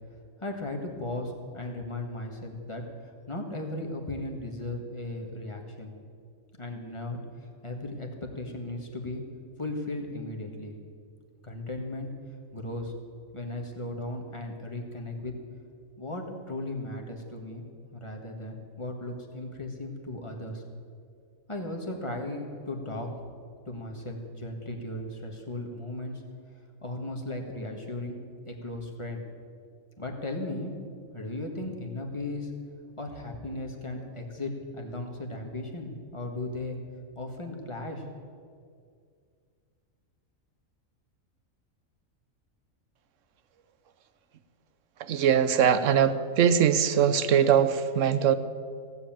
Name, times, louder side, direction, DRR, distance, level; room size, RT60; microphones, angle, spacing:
voice 1, 0.4-5.9 6.6-7.2 7.6-9.2 9.6-10.8 11.4-12.1 12.5-12.9 13.3-15.3 16.0-17.6 17.9-20.6 21.5-23.1 23.6-26.2 26.8-29.2 30.0-30.7 31.1-32.5 33.0-36.8 37.1-38.0, left 2 dB, 20° left, 1 dB, 1.6 m, -36 dB
voice 2, 45.0-48.3, right 8 dB, 70° right, 13 dB, 1.1 m, -22 dB
16.0 x 8.1 x 8.9 m, 2.2 s
omnidirectional pair, 1.4 m